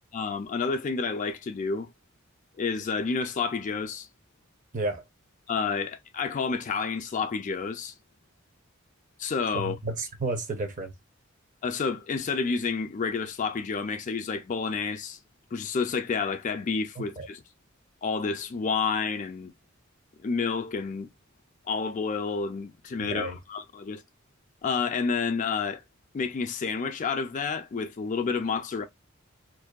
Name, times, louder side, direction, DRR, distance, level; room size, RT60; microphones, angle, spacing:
voice 1, 0.1-1.9 2.6-4.1 5.5-7.9 9.2-9.8 11.6-15.2 15.5-17.4 18.0-19.5 20.2-21.1 21.7-24.0 24.6-25.8 26.1-28.9, left 5 dB, 35° left, 0.3 m, -29 dB
voice 2, 9.5-10.9 17.0-17.3 23.0-23.4, right 2 dB, 40° right, 0.6 m, -32 dB
2.6 x 2.2 x 2.2 m
head